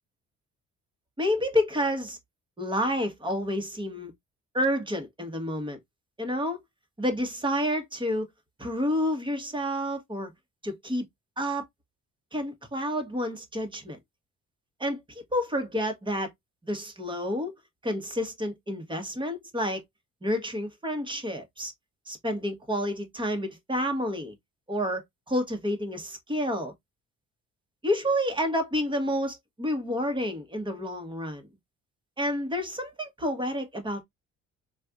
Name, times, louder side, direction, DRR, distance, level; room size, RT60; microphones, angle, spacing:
voice 1, 1.2-2.2 2.6-4.1 4.5-5.8 6.2-6.6 7.0-8.3 8.6-10.3 10.6-11.0 11.4-11.7 12.3-14.0 14.8-16.3 16.6-17.5 17.8-19.8 20.2-21.7 22.1-24.3 24.7-26.7 27.8-31.5 32.2-34.0, equal, 15° right, 1.2 m, -29 dB
4.2 x 2.5 x 2.4 m
cardioid pair, 90°, 30 cm